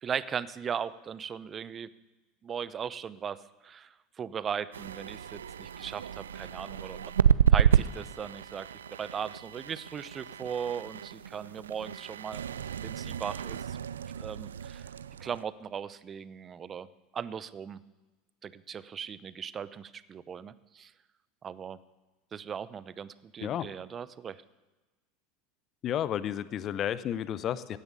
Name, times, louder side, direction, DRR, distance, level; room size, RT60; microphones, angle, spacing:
voice 1, 0.0-1.9 2.4-3.4 3.6-7.1 7.5-8.7 9.0-12.4 12.8-13.8 14.2-14.8 15.2-16.9 17.1-17.8 18.4-20.9 21.4-21.8 22.3-24.4, right 7 dB, 30° right, 17 dB, 0.7 m, -38 dB
sound 1, 4.7-15.4, right 8 dB, 85° right, 0.4 m, -30 dB
voice 2, 25.8-27.8, left 10 dB, 40° left, 17 dB, 0.7 m, -32 dB
16.0 x 10.0 x 8.3 m, 1.2 s
hypercardioid pair, 80°, 0 cm